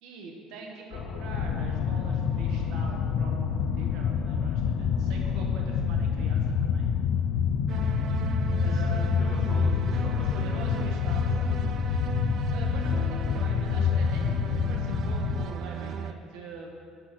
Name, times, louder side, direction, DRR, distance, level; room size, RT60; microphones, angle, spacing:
voice 1, 0.0-6.9 8.6-9.3 10.3-11.3 12.5-16.7, right 3 dB, 75° right, 0 dB, 1.2 m, -44 dB
sound 1, 0.9-12.0, left 3 dB, 50° left, 0.8 m, -39 dB
sound 2, 1.3-15.5, left 7 dB, 70° left, 0.4 m, -27 dB
sound 3, 7.7-16.1, right 8 dB, 50° right, 0.4 m, -35 dB
voice 2, 8.6-10.6 10.9-11.9, left 2 dB, 30° left, -8 dB, 1.8 m, -46 dB
8.3 x 5.9 x 6.0 m, 2.3 s
cardioid pair, 135°, 0 cm